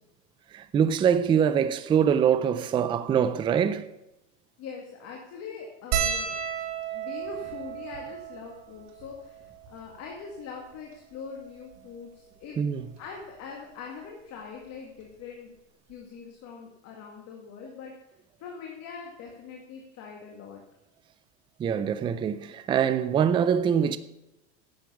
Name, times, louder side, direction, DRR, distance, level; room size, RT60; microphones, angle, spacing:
voice 1, 0.5-3.9 12.6-12.8 21.6-24.0, right 8 dB, 15° right, 0.3 m, -24 dB
voice 2, 4.6-6.3 6.9-12.6 13.0-15.5 15.9-17.9 18.4-20.6, left 5 dB, 45° left, 2.1 m, -42 dB
sound 1, 5.9-10.5 11.3-11.4 11.6-11.8 13.0-13.2 14.7-14.8 15.0-15.2, right 7 dB, 65° right, 2.3 m, -33 dB
10.5 x 7.7 x 7.0 m
supercardioid pair, 135°, 38 cm